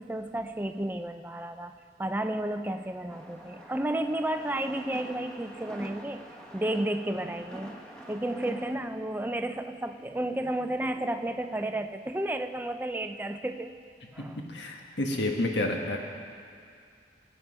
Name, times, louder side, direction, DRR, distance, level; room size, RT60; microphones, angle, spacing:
voice 1, 0.0-1.7 2.0-7.7 8.1-13.7 14.1-14.4, right 1 dB, 10° right, 7 dB, 0.4 m, -32 dB
sound 1, 3.1-8.8, equal, 5° left, 1.1 m, -45 dB
voice 2, 14.2-16.0, left 1 dB, 80° left, 1 dB, 1.5 m, -30 dB
20.5 x 8.3 x 5.5 m, 2.3 s
head